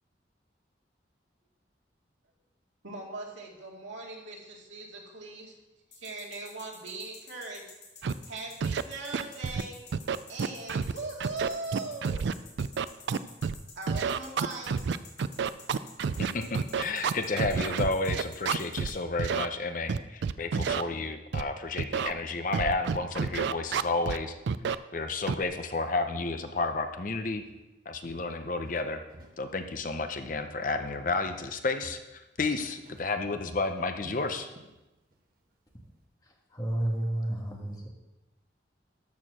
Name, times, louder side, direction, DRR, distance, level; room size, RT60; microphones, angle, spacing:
voice 1, 2.8-5.6 5.9-7.6 8.3-9.8 10.3-12.2 13.8-14.7, right 3 dB, 85° right, -1 dB, 2.1 m, -40 dB
sound 1, 5.9-18.9, left 5 dB, 60° left, 2.9 m, -50 dB
Scratching (performance technique), 8.0-8.1 8.6-8.8 9.1-9.6 9.9-10.9 11.2-13.6 13.9-18.9 19.2-19.5 19.9-20.8 21.3-21.4 21.8-22.1 22.5-24.2 24.5-24.8 25.3-25.4, right 6 dB, 70° right, 0.3 m, -29 dB
voice 2, 16.2-24.4 24.9-27.4 27.9-29.0 29.4-34.5, left 3 dB, 45° left, 7 dB, 0.7 m, -31 dB
Walk footsteps, 27.5-27.7 28.0-29.4 29.7-31.0 31.3-34.8 35.1-35.4 35.8-35.9, right 1 dB, 50° right, 1.0 m, -51 dB
voice 3, 36.2-37.9, right 1 dB, 20° left, 0 dB, 1.4 m, -31 dB
13.0 x 4.5 x 6.1 m, 1.0 s
head